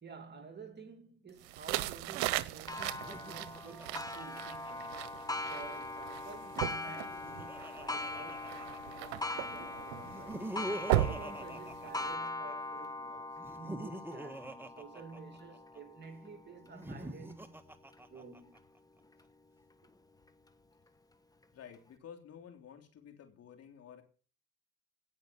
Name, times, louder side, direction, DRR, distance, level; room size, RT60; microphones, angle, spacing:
voice 1, 0.0-5.1 5.5-10.5 10.9-17.7 18.1-18.6, right 4 dB, 35° right, 2.6 m, -51 dB
sound 1, 1.4-12.1, right 15 dB, 85° right, 0.8 m, -38 dB
Clock, 2.7-18.0 18.6-18.7 19.2-19.3 20.3-20.4, left 2 dB, 10° left, 1.3 m, -42 dB
Laughter, 2.9-5.4 6.8-9.1 10.0-12.5 13.4-15.8 16.6-18.6, right 1 dB, 5° right, 1.5 m, -45 dB
voice 2, 21.5-24.0, left 8 dB, 55° left, 3.4 m, -52 dB
17.5 x 5.8 x 7.3 m
supercardioid pair, 80°, 30 cm